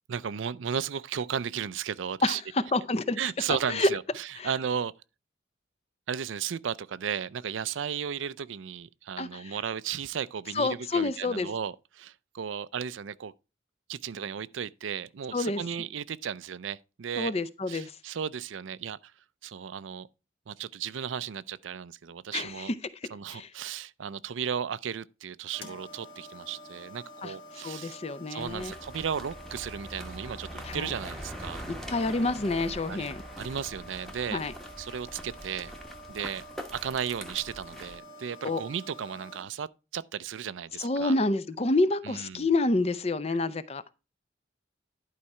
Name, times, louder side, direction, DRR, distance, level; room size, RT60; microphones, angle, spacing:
voice 1, 0.1-2.4 3.2-4.9 6.1-13.3 13.9-17.3 17.7-19.1 19.4-20.1 20.5-22.7 23.1-28.0 28.3-31.6 32.9-33.1 33.4-34.4 34.8-35.7 36.1-36.4 36.7-41.1 42.0-42.5, right 7 dB, 90° right, 0.5 m, -35 dB
voice 2, 2.2-3.2 3.7-3.9 4.4-4.5 9.2-9.6 10.5-11.5 15.3-15.6 17.2-18.0 22.3-22.7 23.3-23.5 27.2-27.3 27.6-28.7 30.6-30.9 31.7-33.2 34.3-34.5 38.4-38.6 40.8-43.9, left 2 dB, 35° left, 0.5 m, -28 dB
sound 1, 25.5-39.4, left 1 dB, 85° left, 3.2 m, -48 dB
sound 2, 28.4-38.0, equal, ahead, 1.0 m, -43 dB
11.5 x 4.7 x 4.3 m
head